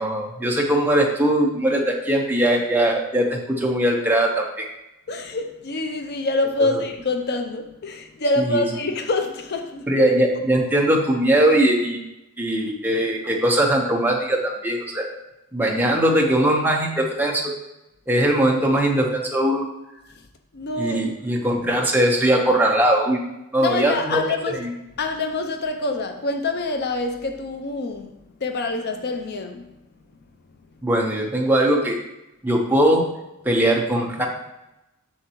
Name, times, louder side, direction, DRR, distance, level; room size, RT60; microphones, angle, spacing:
voice 1, 0.0-4.7 6.6-6.8 8.4-8.6 9.9-12.0 12.4-15.1 15.5-17.5 18.1-19.6 20.8-23.2 23.5-24.2 24.5-24.7 30.8-32.0 32.4-33.1 33.4-34.3, right 1 dB, 10° right, 0.9 m, -20 dB
voice 2, 5.1-9.9 20.5-21.1 23.6-24.6 25.0-29.7, left 2 dB, 50° left, 0.5 m, -26 dB
7.1 x 6.7 x 3.0 m
head